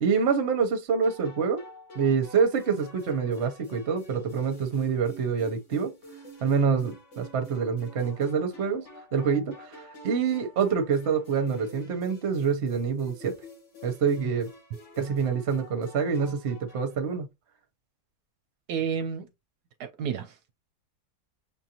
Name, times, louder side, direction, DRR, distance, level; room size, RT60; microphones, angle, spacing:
voice 1, 0.0-1.6 1.9-5.9 6.4-8.8 9.1-13.4 13.8-14.5 15.0-17.3, right 6 dB, 50° right, 0.9 m, -26 dB
sound 1, 1.0-17.0, equal, 90° left, 2.5 m, -48 dB
voice 2, 18.7-19.3 19.8-20.5, right 7 dB, 75° right, 1.0 m, -31 dB
6.7 x 2.5 x 2.9 m
omnidirectional pair, 1.8 m